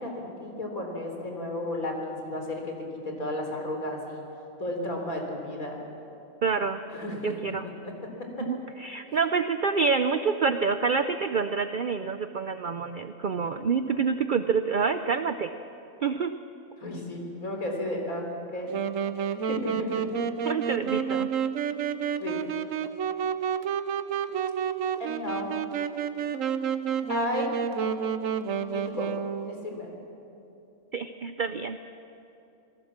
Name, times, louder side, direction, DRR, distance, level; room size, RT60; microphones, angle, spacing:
voice 1, 0.0-2.6 3.0-4.2 4.6-5.8 6.9-7.9 8.4-8.5 16.8-18.3 18.5-18.7 19.3-20.1 22.2-22.4 25.0-25.5 27.1-27.5 28.6-29.1 29.4-29.9, left 1 dB, 85° left, 1 dB, 4.2 m, -33 dB
voice 2, 6.4-6.8 7.2-7.7 8.4-15.5 16.0-16.3 20.4-21.3 30.9-31.8, right 5 dB, 50° right, 9 dB, 0.6 m, -27 dB
Wind instrument woodwind instrument, 18.7-29.6, right 7 dB, 70° right, 1.2 m, -30 dB
27.0 x 18.5 x 7.4 m, 2.8 s
omnidirectional pair, 1.4 m